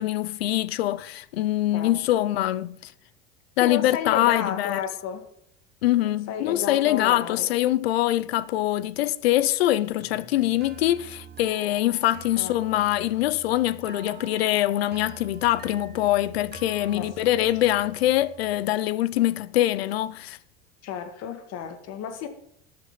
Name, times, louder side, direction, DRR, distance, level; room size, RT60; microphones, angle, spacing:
voice 1, 0.0-2.9 3.6-4.8 5.8-20.4, left 14 dB, 90° left, 0.6 m, -24 dB
voice 2, 3.6-5.3 6.0-7.5 12.4-12.8 16.9-17.1 20.8-22.3, left 8 dB, 60° left, 2.1 m, -32 dB
sound 1, 10.0-18.6, right 8 dB, 35° right, 1.8 m, -46 dB
13.0 x 8.6 x 5.7 m
hypercardioid pair, 85°, 30 cm